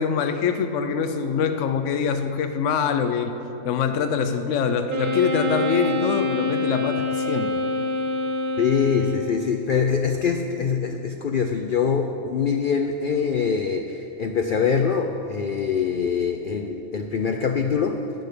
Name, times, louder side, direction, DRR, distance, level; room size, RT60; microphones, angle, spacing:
voice 1, 0.0-3.3 3.6-7.6, left 6 dB, 65° left, 8 dB, 1.0 m, -24 dB
Wind instrument woodwind instrument, 4.9-9.5, left 2 dB, 80° right, 1.3 m, -26 dB
voice 2, 8.6-18.0, left 6 dB, 85° left, 5 dB, 0.4 m, -24 dB
10.5 x 6.4 x 8.3 m, 2.9 s
omnidirectional pair, 1.5 m